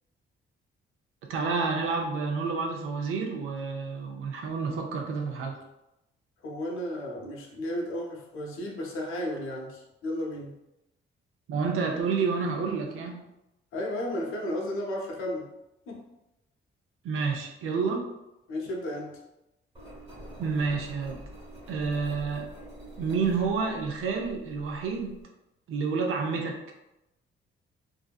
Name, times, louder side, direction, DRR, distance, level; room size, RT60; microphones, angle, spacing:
voice 1, 1.3-5.6 11.5-13.3 17.0-18.1 20.4-21.2 21.7-22.5 23.0-25.2 25.7-26.6, right 5 dB, 80° right, 1 dB, 0.5 m, -29 dB
voice 2, 6.4-10.6 13.7-15.5 15.9-16.1 18.5-19.2, left 1 dB, 80° left, -1 dB, 0.7 m, -33 dB
Engine, 19.7-25.2, equal, 25° right, 0.9 m, -46 dB
2.6 x 2.5 x 2.3 m, 0.91 s
cardioid pair, 145°, 21 cm